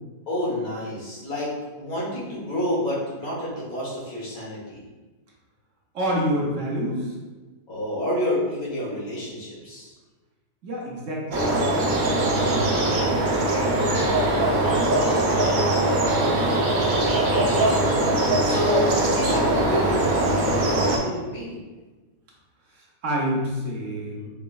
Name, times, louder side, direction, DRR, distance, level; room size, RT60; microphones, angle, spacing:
voice 1, 0.3-1.5 1.8-4.8 7.7-9.9 18.4-21.6, left 1 dB, 70° left, -7 dB, 1.6 m, -29 dB
voice 2, 5.9-7.2 10.6-13.9 14.4-16.4 22.7-24.3, equal, 60° right, -3 dB, 1.1 m, -30 dB
sound 1, 11.3-21.0, right 1 dB, 80° right, 0.4 m, -21 dB
4.8 x 3.0 x 2.3 m, 1.2 s
omnidirectional pair, 1.6 m